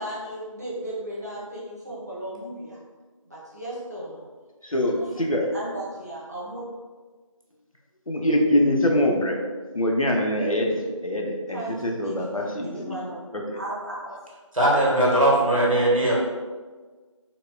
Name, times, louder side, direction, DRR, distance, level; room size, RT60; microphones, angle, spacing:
voice 1, 0.0-2.8 3.2-4.2 4.7-5.1 5.5-6.6 11.5-12.1 12.6-13.2 13.5-14.1, right 1 dB, 30° right, -8 dB, 0.7 m, -35 dB
voice 2, 4.6-5.4 8.1-9.4 9.7-13.0 13.3-13.6, left 1 dB, 80° left, 0 dB, 0.6 m, -24 dB
voice 3, 14.5-16.1, right 1 dB, 75° right, -4 dB, 1.1 m, -19 dB
4.0 x 2.3 x 2.2 m, 1.4 s
figure-of-eight pair, 170°, 17 cm